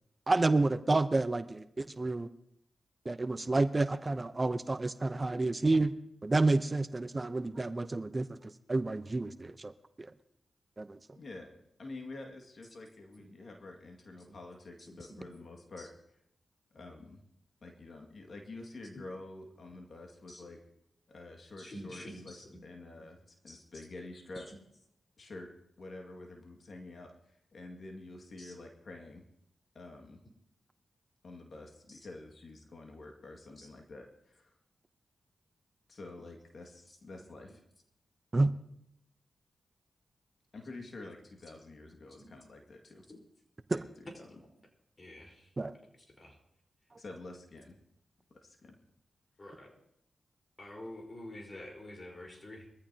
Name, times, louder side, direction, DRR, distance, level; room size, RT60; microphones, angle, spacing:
voice 1, 0.3-2.3 3.0-5.9 6.2-9.7 10.0-10.1 10.8-11.0 38.3-38.5 43.7-43.9 45.6-45.7 46.9-47.0, right 2 dB, 35° right, 12 dB, 0.7 m, -29 dB
voice 2, 11.2-15.9 16.7-17.2 17.6-20.6 21.1-22.4 22.6-24.5 25.2-25.5 25.8-29.2 29.7-30.2 31.2-34.5 35.9-37.6 40.5-43.0 43.7-44.3 47.0-47.8 48.3-48.8, left 2 dB, 65° left, 2 dB, 2.1 m, -48 dB
voice 3, 14.9-15.3 15.8-15.9 20.3-20.5 21.6-22.6 23.5-23.6 24.4-24.6 28.4-28.6 33.6-33.7 42.2-42.3 43.1-43.2 44.4-44.5 45.0-45.5 46.2-46.4 49.4-49.8 50.6-52.7, left 1 dB, 40° left, 1 dB, 4.4 m, -48 dB
22.5 x 14.5 x 2.9 m, 0.75 s
cardioid pair, 45°, 0 cm